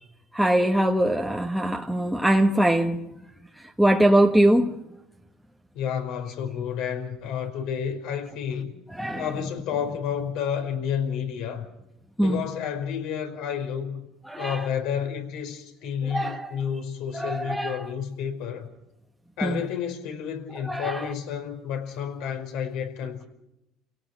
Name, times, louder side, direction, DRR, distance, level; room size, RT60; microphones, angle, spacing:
voice 1, 0.3-3.0 3.8-4.8 8.9-9.3 12.2-12.4 14.3-14.7 16.0-16.5 17.1-17.9 19.4-19.6 20.6-21.1, right 1 dB, ahead, 1.3 m, -22 dB
voice 2, 5.7-8.7 9.2-11.6 12.2-14.1 14.4-18.7 19.4-23.2, left 8 dB, 65° left, 5.1 m, -30 dB
30.0 x 18.0 x 6.2 m
cardioid pair, 120°, 0 cm